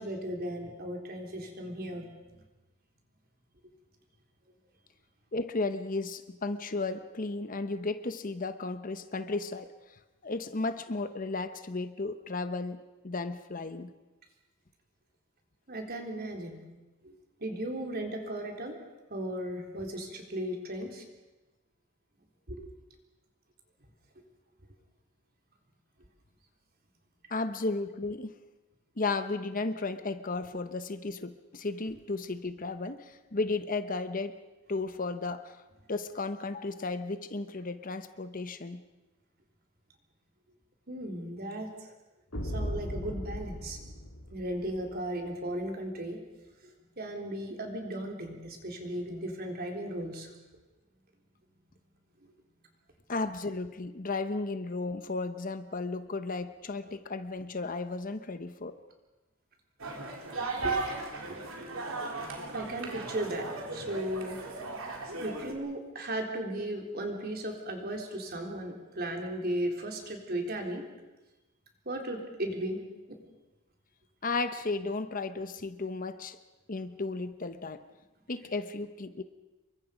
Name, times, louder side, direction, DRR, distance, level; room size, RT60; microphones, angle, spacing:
voice 1, 0.0-2.1 15.7-16.7 17.0-17.1 17.4-18.8 19.1-21.0 22.5-22.7 40.9-41.9 42.4-43.8 44.3-46.2 46.6-50.3 60.6-60.9 61.2-61.4 62.5-64.4 65.2-70.8 71.9-72.8 73.1-73.2, right 1 dB, 50° right, 2 dB, 3.9 m, -36 dB
voice 2, 5.3-9.7 10.2-13.9 27.3-28.3 29.0-34.4 34.7-35.6 35.9-38.8 53.1-58.8 74.2-76.4 76.7-77.8 78.3-79.2, left 3 dB, 40° left, 10 dB, 1.0 m, -34 dB
sound 1, 42.3-44.9, equal, 75° left, 3.4 m, -37 dB
sound 2, 59.8-65.5, right 3 dB, 75° right, 3.6 m, -36 dB
28.5 x 23.5 x 5.2 m, 1.1 s
head